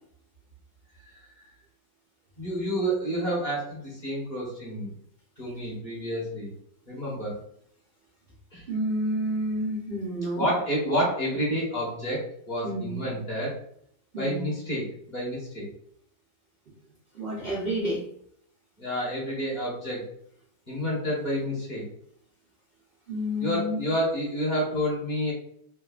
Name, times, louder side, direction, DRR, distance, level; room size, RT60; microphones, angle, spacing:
voice 1, 2.4-4.9 5.4-6.5 6.9-7.3 8.5-8.6 10.3-13.6 14.2-15.7 18.8-20.0 20.7-21.8 23.4-25.3, equal, 30° left, -5 dB, 0.9 m, -29 dB
voice 2, 8.7-10.5 12.6-13.0 14.1-14.4 17.1-18.0 23.1-23.8, equal, 80° right, -7 dB, 0.5 m, -29 dB
3.5 x 2.2 x 2.3 m, 0.67 s
omnidirectional pair, 2.0 m